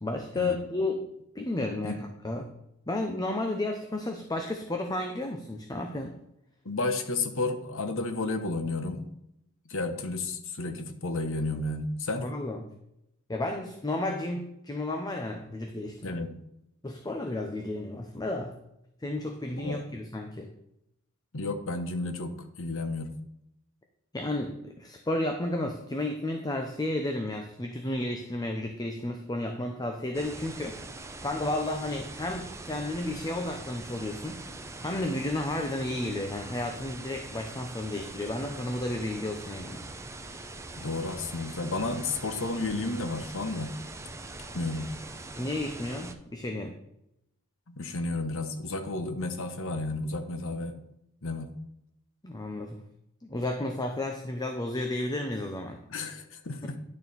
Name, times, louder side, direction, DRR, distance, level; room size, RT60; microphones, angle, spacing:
voice 1, 0.0-1.1 1.3-2.5 2.9-6.2 12.2-12.7 13.3-16.2 16.8-18.5 19.0-20.5 24.1-30.8 31.2-34.4 34.8-39.8 45.4-46.7 52.2-52.8 53.2-55.8 56.6-56.7, left 1 dB, 20° left, 4 dB, 0.8 m, -32 dB
voice 2, 6.6-9.0 9.7-12.2 16.0-16.3 19.6-19.8 21.3-23.2 40.8-43.8 44.5-44.9 47.7-50.7 51.2-51.5 55.9-56.8, left 2 dB, 65° left, 7 dB, 1.1 m, -32 dB
sound 1, 30.1-46.1, right 2 dB, 15° right, 0.7 m, -43 dB
11.0 x 6.7 x 4.2 m, 0.81 s
head